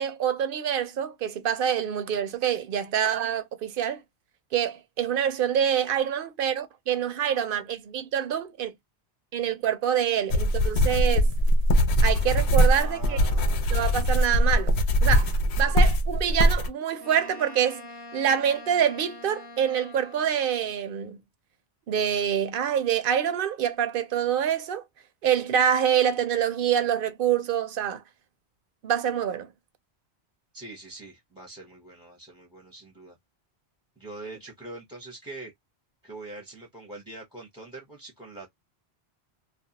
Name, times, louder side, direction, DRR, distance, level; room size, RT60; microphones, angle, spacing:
voice 1, 0.0-4.0 4.5-8.7 9.3-11.3 12.0-13.2 13.7-14.7 15.0-17.9 18.1-21.2 21.9-24.8 25.2-28.0 28.8-29.5, right 9 dB, 60° right, 0.7 m, -26 dB
sound 1, 10.3-16.7, equal, 80° left, 0.8 m, -21 dB
voice 2, 12.7-13.7 15.6-15.7 30.5-33.2 34.0-35.5 36.0-38.5, right 2 dB, 5° right, 0.6 m, -43 dB
Wind instrument woodwind instrument, 17.0-20.5, left 2 dB, 45° left, 0.3 m, -44 dB
2.3 x 2.3 x 2.7 m
omnidirectional pair, 1.1 m